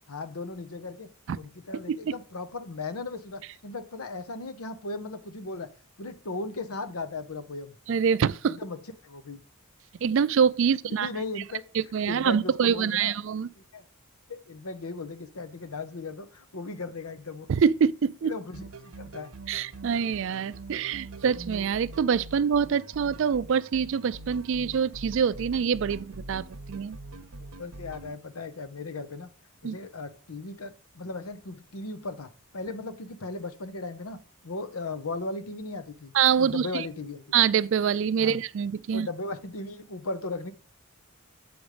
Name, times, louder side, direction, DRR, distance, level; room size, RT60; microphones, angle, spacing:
voice 1, 0.1-1.1 1.4-5.7 6.0-7.8 8.5-9.4 10.8-11.6 12.0-13.1 13.7-13.8 14.3-17.5 18.2-19.3 27.4-29.3 29.6-36.1 36.4-37.2 38.2-38.4 38.9-40.5, left 3 dB, 85° left, 0.9 m, -37 dB
voice 2, 7.9-8.6 10.0-11.1 11.7-13.5 17.5-18.3 19.5-26.4 26.7-27.0 29.6-29.8 36.1-36.8 37.3-39.1, right 7 dB, 60° right, 0.3 m, -25 dB
sound 1, 18.5-28.1, right 2 dB, 80° right, 0.8 m, -43 dB
7.9 x 5.2 x 4.9 m
head